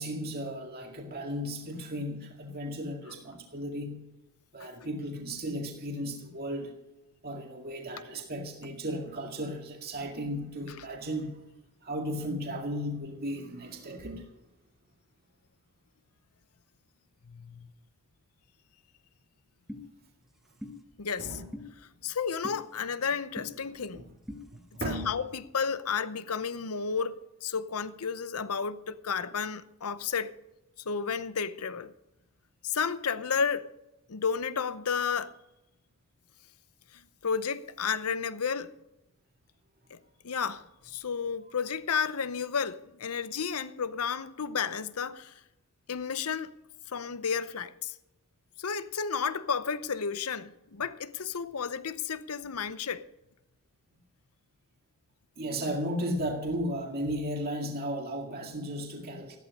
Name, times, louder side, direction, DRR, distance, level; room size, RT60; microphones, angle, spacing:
voice 1, 0.0-4.0 4.5-6.7 7.2-11.4 11.8-14.3 21.2-21.5 23.9-24.0 24.5-25.2 55.4-59.4, equal, 45° right, 2.0 m, -35 dB
voice 2, 17.2-17.7 21.0-21.4 22.0-24.0 24.8-30.3 30.9-31.9 32.6-33.7 34.1-35.3 37.2-38.7 39.9-45.3 45.9-46.6 46.9-47.9 48.6-53.0, left 6 dB, 70° left, 0.8 m, -32 dB
sound 1, 19.7-19.8 20.6-20.8 21.5-21.7 22.4-22.6 23.4-23.5 24.3-24.4, left 1 dB, ahead, 1.4 m, -40 dB
14.0 x 12.5 x 5.3 m
head